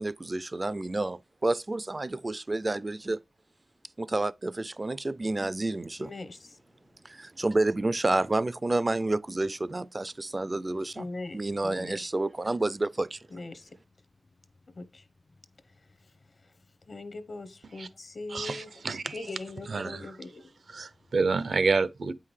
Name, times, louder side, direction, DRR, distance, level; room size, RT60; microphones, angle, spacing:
voice 1, 0.0-3.2 4.0-6.1 7.0-11.1 11.3-13.3, right 2 dB, 30° right, 0.3 m, -29 dB
voice 2, 6.0-6.6 10.9-12.1 13.3-13.7 14.8-15.0 16.9-18.7 19.1-20.5, left 2 dB, 55° left, 0.8 m, -41 dB
voice 3, 18.3-19.2 19.7-20.0 20.7-22.1, right 4 dB, 75° right, 0.6 m, -28 dB
8.5 x 5.6 x 3.2 m
wide cardioid pair, 95°, 0 cm